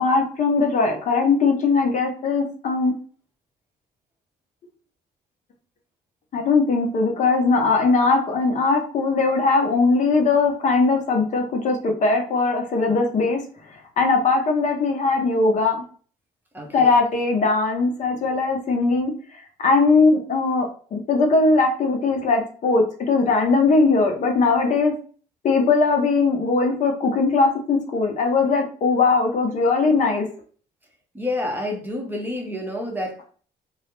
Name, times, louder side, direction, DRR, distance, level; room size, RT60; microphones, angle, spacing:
voice 1, 0.0-3.0 6.3-13.4 14.0-15.8 16.7-19.1 19.6-24.9 25.4-30.2, left 3 dB, 45° left, 3 dB, 0.6 m, -20 dB
voice 2, 16.5-16.9 31.1-33.2, left 1 dB, 10° right, 0 dB, 0.6 m, -29 dB
2.3 x 2.0 x 2.9 m, 0.42 s
cardioid pair, 110°, 17 cm